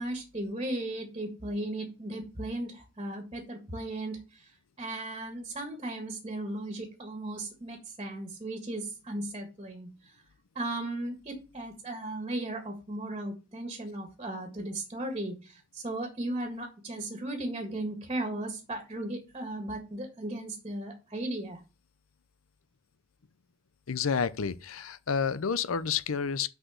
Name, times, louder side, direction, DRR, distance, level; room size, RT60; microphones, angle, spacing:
voice 1, 0.0-4.5 4.8-9.9 10.6-21.6, right 1 dB, 25° right, 1.8 m, -36 dB
voice 2, 23.9-26.5, left 6 dB, 85° left, 0.6 m, -30 dB
6.2 x 5.0 x 6.4 m
head